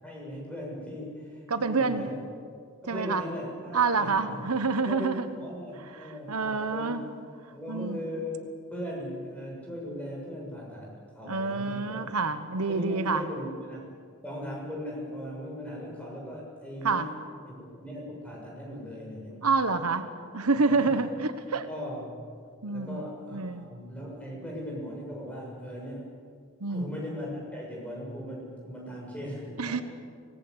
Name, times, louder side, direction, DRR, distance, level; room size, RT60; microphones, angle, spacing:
voice 1, 0.0-2.2 2.8-4.4 4.8-7.0 7.5-8.4 8.7-12.1 12.6-13.9 14.2-17.1 17.5-19.5 20.6-20.9 21.7-22.2 22.6-26.2 26.7-29.8, equal, 5° left, -3 dB, 6.9 m, -38 dB
voice 2, 1.5-2.1 2.9-3.2 3.7-5.3 6.3-7.0 7.7-8.0 11.2-13.2 16.8-17.1 19.4-20.1 20.3-21.7 22.6-23.0 23.3-23.7 26.6-26.9 29.6-29.8, right 4 dB, 80° right, 10 dB, 1.2 m, -27 dB
25.0 x 19.0 x 8.3 m, 2.1 s
head